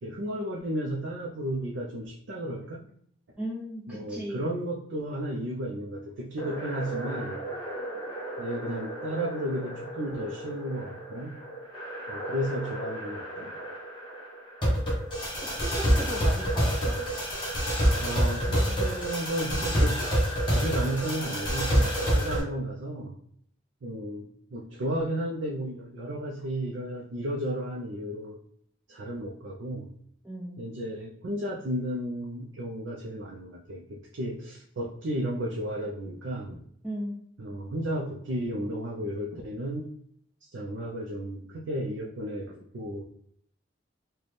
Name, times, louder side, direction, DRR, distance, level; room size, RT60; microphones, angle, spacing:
voice 1, 0.0-2.9 3.9-7.4 8.4-11.4 12.1-13.6 18.0-20.0 20.4-23.2 23.8-28.4 28.9-29.9 30.6-36.6 37.4-39.9 40.5-43.0, right 1 dB, 75° right, -2 dB, 0.5 m, -33 dB
voice 2, 3.4-4.4 15.6-17.0 30.2-30.6 36.8-37.2, equal, 5° right, -7 dB, 0.5 m, -36 dB
sound 1, 6.4-22.4, equal, 25° left, 1.1 m, -29 dB
4.1 x 2.2 x 3.2 m, 0.66 s
head